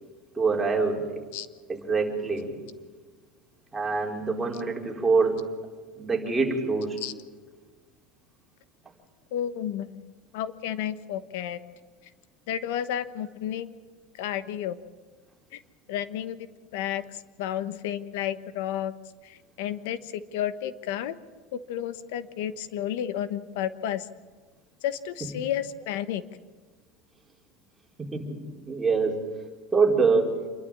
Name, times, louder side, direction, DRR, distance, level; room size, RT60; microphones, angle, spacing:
voice 1, 0.3-1.2 1.7-2.5 3.7-5.4 6.0-7.0 28.0-28.4 28.7-29.2 29.7-30.3, right 4 dB, 10° right, -1 dB, 4.3 m, -25 dB
voice 2, 9.3-11.6 12.5-13.7 14.1-14.8 15.5-15.6 15.9-16.5 16.7-18.9 19.2-21.2 21.5-24.1 24.8-26.2, left 10 dB, 75° left, 12 dB, 1.1 m, -32 dB
28.0 x 12.0 x 8.7 m, 1.4 s
supercardioid pair, 145°, 0 cm